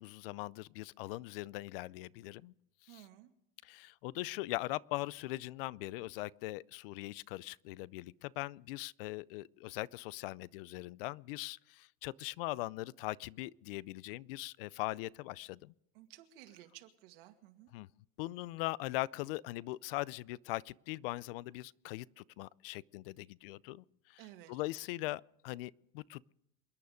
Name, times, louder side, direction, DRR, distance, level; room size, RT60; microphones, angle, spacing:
voice 1, 0.0-2.5 2.8-3.1 3.6-15.7 17.7-17.9 18.2-24.2 24.5-26.3, left 19 dB, 70° left, 0.5 m, -41 dB
voice 2, 2.9-3.3 15.9-17.7 24.2-24.6, right 14 dB, 65° right, 2.1 m, -55 dB
28.0 x 9.5 x 5.1 m
supercardioid pair, 155°, 30 cm